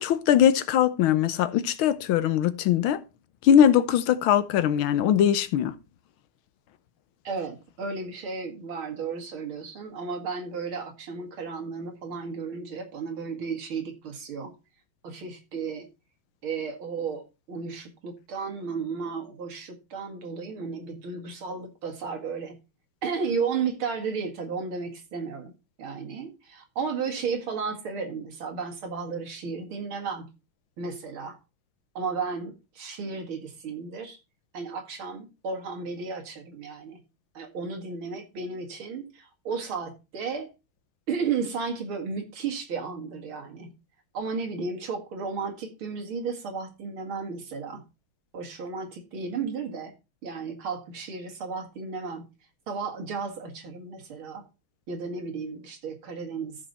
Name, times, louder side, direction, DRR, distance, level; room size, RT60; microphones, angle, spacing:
voice 1, 0.0-3.0 3.4-5.7, left 9 dB, 85° left, 1.6 m, -21 dB
voice 2, 7.2-14.5 15.0-15.9 16.4-22.6 23.0-25.5 25.8-30.3 30.8-31.4 31.9-34.2 34.5-37.0 37.3-40.5 41.1-43.7 44.1-47.8 48.3-49.9 50.2-52.3 52.7-54.5 54.9-56.6, right 5 dB, 80° right, 2.7 m, -33 dB
13.5 x 5.3 x 4.1 m
omnidirectional pair, 2.3 m